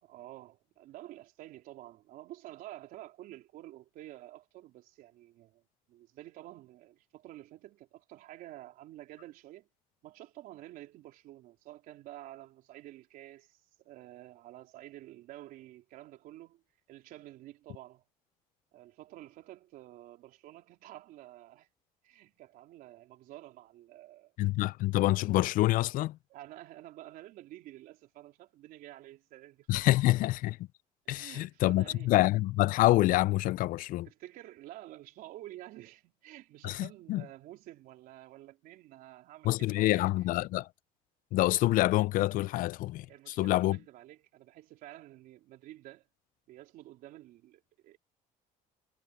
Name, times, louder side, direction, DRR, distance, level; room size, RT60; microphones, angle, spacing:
voice 1, 0.0-5.6 5.9-9.7 10.0-16.6 16.9-18.0 18.7-21.7 22.0-24.3 26.3-29.9 31.1-32.2 33.8-40.1 43.1-46.1 46.5-48.0, right 15 dB, 70° right, 3.6 m, -50 dB
voice 2, 24.4-26.2 29.7-30.6 31.1-34.1 36.6-37.2 39.4-40.7 41.3-43.8, left 17 dB, 65° left, 0.4 m, -27 dB
cardioid pair, 95°, 15 cm